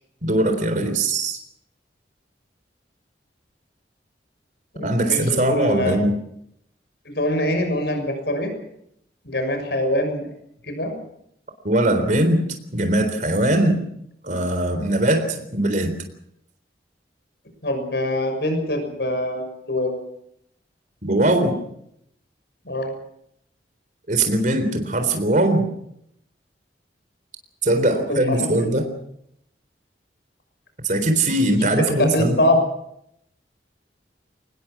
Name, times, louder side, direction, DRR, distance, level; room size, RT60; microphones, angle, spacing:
voice 1, 0.2-1.4 4.8-6.1 11.6-12.4 12.7-13.8 14.2-15.9 21.0-21.6 24.1-25.7 27.6-28.9 30.8-32.5, right 1 dB, 45° right, 7 dB, 3.9 m, -20 dB
voice 2, 4.7-6.0 7.1-8.5 9.2-10.2 10.6-10.9 17.6-19.9 22.6-22.9 27.9-28.7 31.8-32.6, left 1 dB, 65° left, 6 dB, 6.5 m, -24 dB
25.0 x 20.0 x 6.2 m, 0.73 s
head